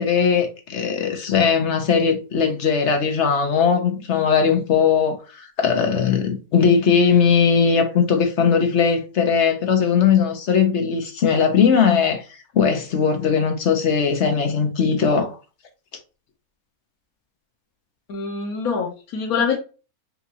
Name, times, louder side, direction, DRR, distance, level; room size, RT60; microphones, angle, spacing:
voice 1, 0.0-12.2 12.5-15.4, left 6 dB, 55° left, 1.2 m, -19 dB
voice 2, 18.1-19.6, left 5 dB, 85° left, 1.4 m, -24 dB
5.6 x 2.5 x 2.8 m
omnidirectional pair, 1.5 m